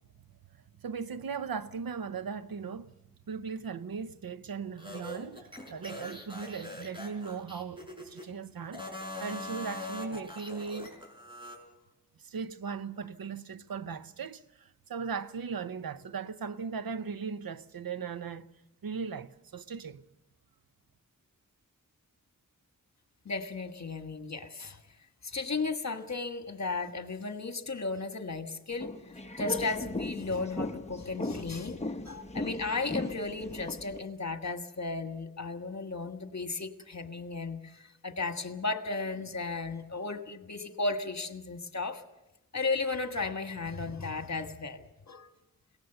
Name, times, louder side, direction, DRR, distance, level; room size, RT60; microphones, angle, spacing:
voice 1, 0.8-2.9 3.3-8.9 9.2-10.9 12.2-18.5 18.8-20.0, right 5 dB, 85° right, 0.8 m, -38 dB
sound 1, 4.8-8.3 8.7-11.6, left 2 dB, 15° right, 5.2 m, -42 dB
voice 2, 23.2-24.8 25.2-28.9 29.4-42.0 42.5-45.3, left 3 dB, 50° left, 1.6 m, -35 dB
sound 2, 28.7-34.0, left 2 dB, 20° left, 1.0 m, -37 dB
22.0 x 18.0 x 6.8 m
wide cardioid pair, 70°, 34 cm